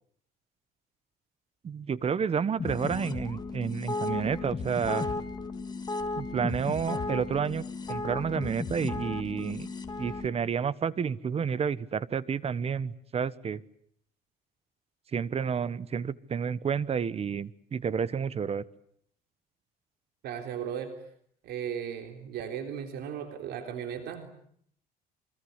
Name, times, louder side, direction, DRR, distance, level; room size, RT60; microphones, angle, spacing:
voice 1, 1.6-5.1 6.2-9.7 10.0-13.6 15.1-18.6, right 6 dB, 35° right, 18 dB, 1.2 m, -30 dB
sound 1, 2.6-10.3, left 3 dB, 25° left, 3.2 m, -35 dB
voice 2, 20.2-20.9 21.4-24.3, right 8 dB, 75° right, 6 dB, 3.7 m, -36 dB
28.5 x 25.5 x 8.1 m, 0.66 s
cardioid pair, 110°, 17 cm